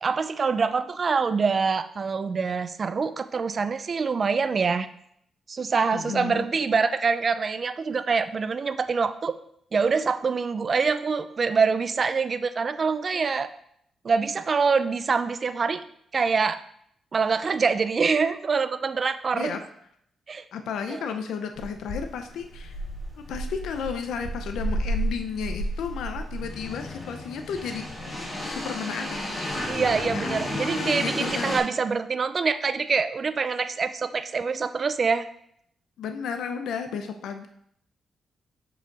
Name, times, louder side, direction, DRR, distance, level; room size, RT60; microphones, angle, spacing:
voice 1, 0.0-4.9 5.5-9.4 9.7-13.5 14.0-15.8 16.1-16.6 17.1-19.6 20.3-20.4 20.9-21.0 29.7-35.2, right 5 dB, 35° right, 12 dB, 0.4 m, -25 dB
voice 2, 5.9-6.5 19.3-19.6 20.5-22.8 23.3-27.8 28.2-29.2 29.7-31.6 36.0-37.5, left 6 dB, 90° left, 6 dB, 0.6 m, -33 dB
sound 1, 21.6-31.6, equal, 30° left, 3.1 m, -32 dB
6.4 x 4.9 x 4.7 m, 0.70 s
cardioid pair, 140°, 0 cm